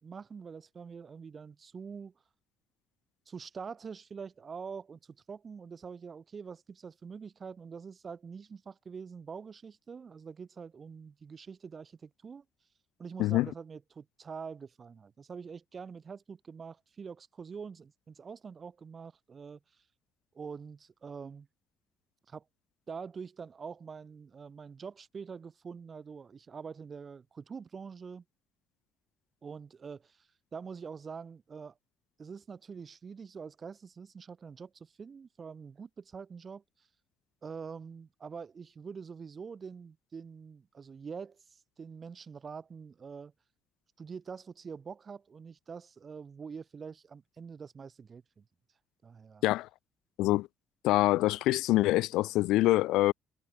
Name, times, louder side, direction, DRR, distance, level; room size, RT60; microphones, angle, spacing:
voice 1, 0.0-2.1 3.3-12.4 13.0-19.6 20.3-21.5 22.3-22.4 22.9-28.2 29.4-31.8 32.2-36.6 37.4-43.3 44.0-48.4 49.0-49.4, right 6 dB, 25° right, 2.6 m, -45 dB
voice 2, 50.8-53.1, left 17 dB, 90° left, 2.3 m, -25 dB
cardioid pair, 165°, 0 cm